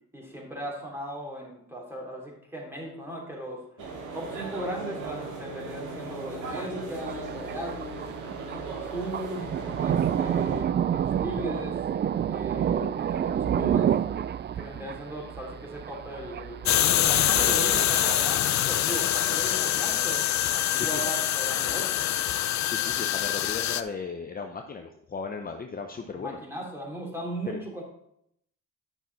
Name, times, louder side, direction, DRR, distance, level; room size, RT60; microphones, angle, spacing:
voice 1, 0.1-3.6 4.1-8.1 8.5-9.4 9.8-11.8 12.3-14.0 14.6-20.2 20.5-22.0 26.0-27.8, right 1 dB, 10° right, -2 dB, 3.3 m, -37 dB
sound 1, 3.8-10.6, right 3 dB, 80° right, 2.2 m, -38 dB
Thunder, 7.0-18.2, right 9 dB, 35° right, 0.4 m, -30 dB
sound 2, 16.7-23.8, left 12 dB, 65° left, 0.6 m, -25 dB
voice 2, 20.7-21.1 21.6-21.8 22.7-26.4 27.5-27.6, left 5 dB, 30° left, 4 dB, 0.8 m, -36 dB
10.0 x 5.9 x 4.1 m, 0.75 s
cardioid pair, 90°, 30 cm